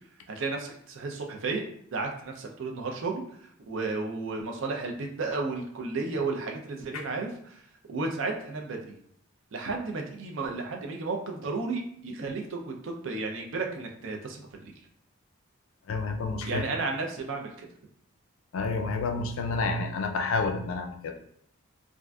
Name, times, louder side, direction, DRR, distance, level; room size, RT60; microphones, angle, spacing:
voice 1, 0.3-1.6 1.9-7.6 7.9-8.9 9.5-14.7 16.5-17.7, right 3 dB, 65° right, 2 dB, 0.5 m, -33 dB
voice 2, 15.9-16.7 18.5-21.2, left 3 dB, 75° left, 5 dB, 0.4 m, -29 dB
3.5 x 2.5 x 2.2 m, 0.67 s
head